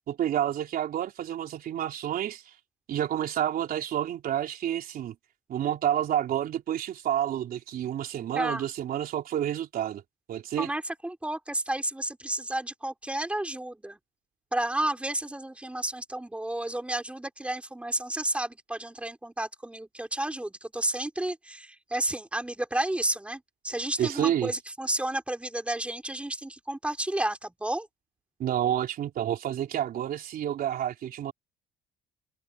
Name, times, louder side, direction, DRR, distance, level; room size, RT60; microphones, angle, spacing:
voice 1, 0.1-2.5 2.9-5.2 5.5-10.0 10.3-10.7 24.0-24.5 28.4-31.3, right 10 dB, 60° right, 3.7 m, -29 dB
voice 2, 10.6-14.0 14.5-27.9, right 1 dB, 5° right, 3.8 m, -31 dB
cardioid pair, 110°, 17 cm